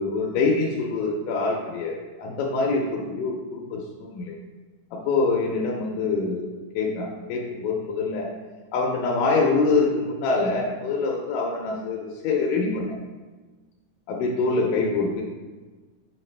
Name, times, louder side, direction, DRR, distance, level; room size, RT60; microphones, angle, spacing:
voice 1, 0.0-4.3 4.9-6.5 6.7-8.3 8.7-12.8 14.1-15.2, left 3 dB, 80° left, -1 dB, 2.1 m, -25 dB
6.3 x 4.6 x 3.2 m, 1.3 s
omnidirectional pair, 3.9 m